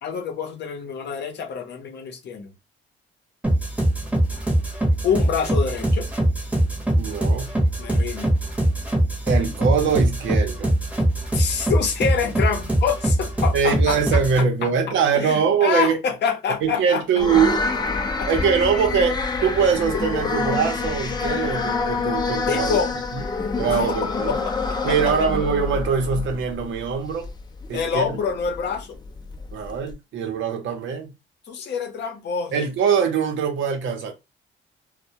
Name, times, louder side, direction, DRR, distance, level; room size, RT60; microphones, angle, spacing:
voice 1, 0.0-2.5 5.0-6.1 7.8-8.3 11.3-17.0 18.2-18.3 22.5-23.0 23.7-24.5 24.9-25.0 27.7-29.0 31.5-32.6, left 6 dB, 60° left, 0.7 m, -26 dB
sound 1, 3.4-14.4, right 1 dB, 5° right, 0.8 m, -22 dB
voice 2, 7.0-7.5 9.3-10.7 13.5-16.0 16.6-17.6 18.3-22.8 23.1-23.2 23.6-24.3 24.8-27.3 27.7-28.2 29.5-31.1 32.5-34.1, right 6 dB, 75° right, 0.7 m, -22 dB
sound 2, 17.2-29.9, left 4 dB, 20° left, 0.4 m, -27 dB
2.1 x 2.1 x 2.7 m
cardioid pair, 90°, 20 cm